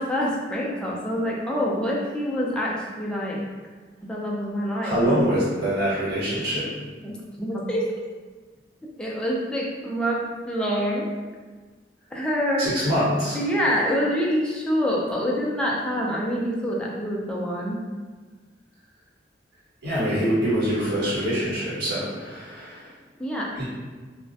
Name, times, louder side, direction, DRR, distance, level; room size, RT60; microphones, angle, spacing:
voice 1, 0.0-3.4 4.1-5.3 7.0-7.8 9.0-11.0 12.1-12.7 13.3-17.8 23.2-23.6, equal, 5° left, -4 dB, 0.3 m, -26 dB
voice 2, 4.8-6.7 12.6-13.4 19.8-22.9 23.6-23.7, equal, 60° right, -9 dB, 1.2 m, -24 dB
2.3 x 2.0 x 2.6 m, 1.4 s
head